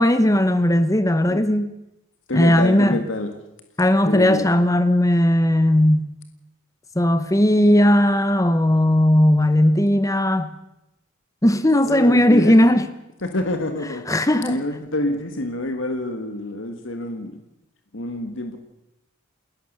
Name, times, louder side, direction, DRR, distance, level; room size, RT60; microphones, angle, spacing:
voice 1, 0.0-1.7 2.3-3.0 3.8-6.1 7.0-10.5 11.4-12.9 14.1-14.6, left 1 dB, 15° left, 0.9 m, -17 dB
voice 2, 2.3-3.4 4.0-4.5 11.9-12.6 13.2-14.0 14.5-17.4 17.9-18.6, left 1 dB, 70° left, 1.8 m, -27 dB
30.0 x 13.5 x 6.7 m
head